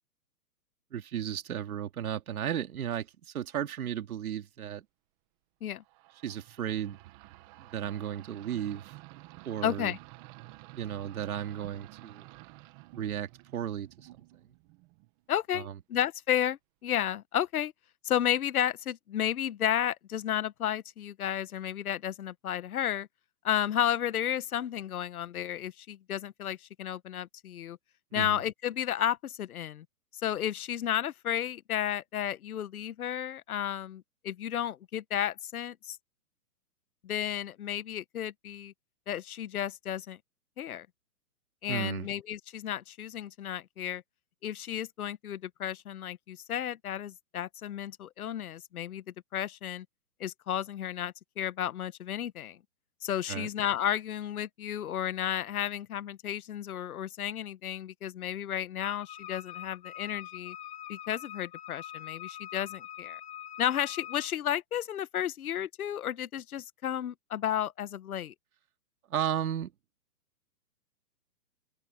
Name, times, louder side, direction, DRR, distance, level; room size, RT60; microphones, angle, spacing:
voice 1, 0.9-4.8 6.2-7.0 7.6-8.9 9.4-9.9 10.7-12.3 12.9-14.2 15.5-15.7 28.1-28.4 41.7-42.1 53.3-53.5 69.1-69.7, right 10 dB, 65° right, 2.6 m, -34 dB
sound 1, 5.8-15.2, right 19 dB, 20° right, 1.4 m, -52 dB
voice 2, 9.6-10.0 15.3-17.7 18.0-23.1 23.4-27.8 28.1-29.8 30.2-36.0 37.0-38.7 39.1-40.2 40.6-40.9 41.6-44.0 44.4-49.0 49.3-49.8 50.2-52.6 53.0-60.6 60.9-63.2 63.6-68.3, left 10 dB, 65° left, 1.2 m, -32 dB
Wind instrument woodwind instrument, 58.8-64.3, left 11 dB, 15° left, 2.5 m, -44 dB
hypercardioid pair, 165°, 46 cm